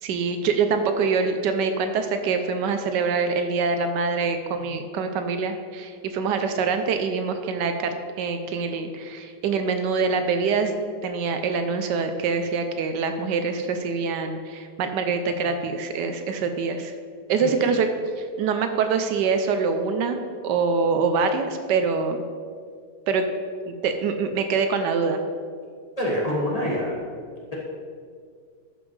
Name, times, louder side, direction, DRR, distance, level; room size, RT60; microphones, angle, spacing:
voice 1, 0.0-10.7 11.0-16.9 17.3-17.9 18.2-20.2 20.4-22.2 23.1-23.2 23.7-25.2, right 5 dB, 80° right, 7 dB, 1.2 m, -25 dB
voice 2, 17.4-17.8 26.0-27.0, left 1 dB, 25° left, -6 dB, 1.4 m, -26 dB
12.0 x 5.3 x 3.2 m, 2.1 s
omnidirectional pair, 1.9 m